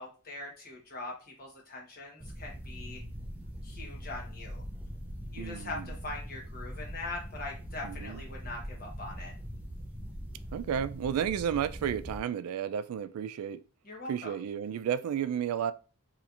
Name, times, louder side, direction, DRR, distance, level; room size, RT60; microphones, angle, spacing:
voice 1, 0.0-3.0 3.6-4.6 5.3-9.3 13.8-14.3, left 2 dB, 45° left, 1.1 m, -42 dB
sound 1, 2.2-12.2, equal, 5° right, 0.4 m, -42 dB
voice 2, 5.4-5.9 7.8-8.2 10.5-13.6 14.1-15.7, right 8 dB, 90° right, 0.3 m, -32 dB
3.1 x 2.8 x 2.4 m
head